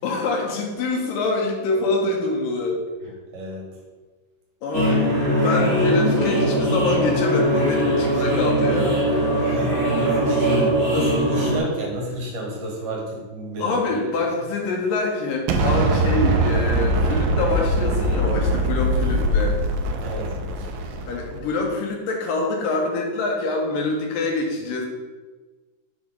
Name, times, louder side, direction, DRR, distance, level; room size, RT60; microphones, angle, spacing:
voice 1, 0.0-2.8 4.6-9.0 10.5-10.7 13.6-19.6 21.1-24.9, left 3 dB, 75° left, 0 dB, 2.7 m, -25 dB
voice 2, 3.3-3.7 9.4-14.0 20.0-20.7, equal, 65° right, -2 dB, 2.9 m, -30 dB
sound 1, 4.7-11.6, equal, 25° right, 1.6 m, -21 dB
Explosion, 15.5-21.5, right 1 dB, 85° right, 2.3 m, -22 dB
7.1 x 4.1 x 5.4 m, 1.3 s
omnidirectional pair, 4.0 m